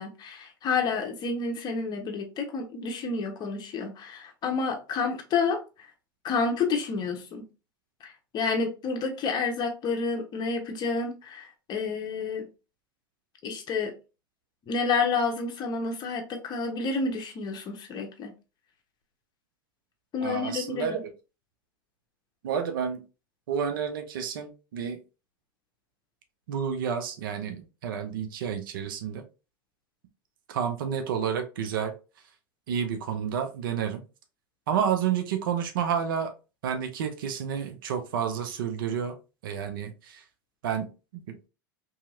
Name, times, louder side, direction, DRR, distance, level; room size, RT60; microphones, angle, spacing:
voice 1, 0.0-5.6 6.2-7.4 8.0-12.5 13.4-13.9 14.7-18.3 20.1-21.0, left 4 dB, 35° left, 0.9 m, -29 dB
voice 2, 20.2-21.1 22.4-23.0 23.5-25.0 26.5-29.2 30.5-31.9 32.7-34.0 34.7-36.3 36.6-39.2 39.4-40.2 40.6-40.9 41.1-41.4, right 7 dB, 70° right, 0.5 m, -30 dB
2.8 x 2.7 x 2.4 m
hypercardioid pair, 85°, 12 cm